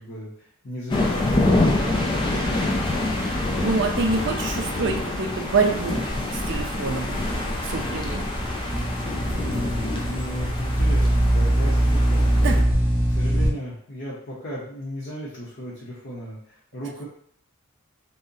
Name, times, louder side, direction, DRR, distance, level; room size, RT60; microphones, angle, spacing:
voice 1, 0.0-3.3 9.4-12.4 13.1-17.1, equal, 50° left, -7 dB, 0.7 m, -36 dB
sound 1, 0.9-12.6, left 2 dB, 20° left, 0.3 m, -26 dB
voice 2, 3.6-6.1 6.5-7.1 7.6-8.3 12.4-12.7, right 4 dB, 55° right, 4 dB, 0.4 m, -26 dB
sound 2, 6.1-13.5, right 1 dB, 5° right, 0.8 m, -23 dB
2.7 x 2.1 x 3.7 m, 0.65 s
head